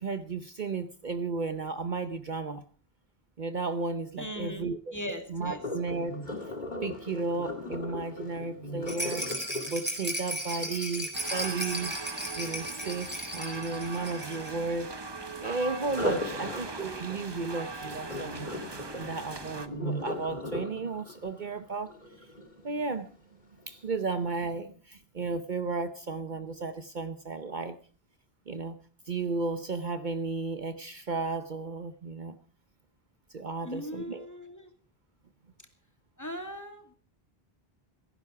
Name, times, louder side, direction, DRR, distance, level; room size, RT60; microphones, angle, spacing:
voice 1, 0.0-2.6 3.4-6.2 6.8-9.2 9.7-12.0 12.4-15.0 15.4-18.5 18.9-22.3 22.6-23.1 23.7-27.8 28.5-28.8 29.1-32.4 33.3-34.3, right 3 dB, 50° right, 10 dB, 1.0 m, -34 dB
voice 2, 4.2-5.6 16.2-16.4 33.6-34.7 36.2-36.9, left 1 dB, 15° left, 5 dB, 2.4 m, -39 dB
Sink (filling or washing), 5.5-11.4 15.8-22.9 23.4-23.7 24.2-24.3, left 1 dB, 50° left, 2.7 m, -38 dB
Rattle, 8.9-14.6 14.8-14.9 15.2-15.3, equal, 10° right, 4.1 m, -36 dB
sound 1, 11.1-19.7, right 3 dB, 25° right, 0.9 m, -40 dB
16.5 x 15.5 x 4.7 m, 0.41 s
omnidirectional pair, 1.0 m